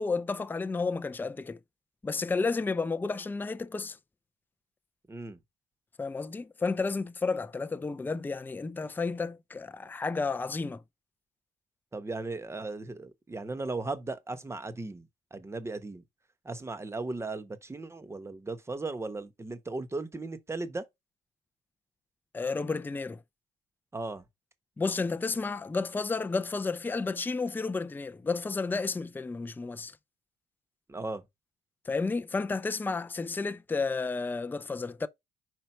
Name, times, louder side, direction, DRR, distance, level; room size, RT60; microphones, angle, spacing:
voice 1, 0.0-1.6 2.0-4.0 6.0-10.8 22.3-23.2 24.8-30.0 31.9-35.1, left 4 dB, 10° left, 0.4 m, -31 dB
voice 2, 5.1-5.4 11.9-16.0 16.4-20.9 23.9-24.2 30.9-31.2, right 3 dB, 15° right, 0.9 m, -37 dB
5.0 x 4.5 x 4.3 m
cardioid pair, 110°, 17 cm